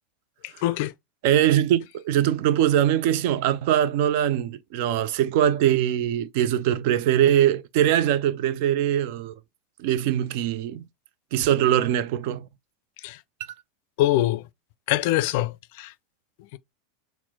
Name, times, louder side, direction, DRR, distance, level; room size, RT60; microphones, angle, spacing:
voice 1, 0.6-0.9 13.0-13.2 14.0-14.4 14.9-15.9 16.5-16.6, left 15 dB, 55° left, 0.3 m, -23 dB
voice 2, 1.2-9.3 9.8-10.8 11.3-12.5, right 11 dB, 55° right, 0.3 m, -22 dB
5.7 x 2.1 x 2.7 m
figure-of-eight pair, 85°, 0 cm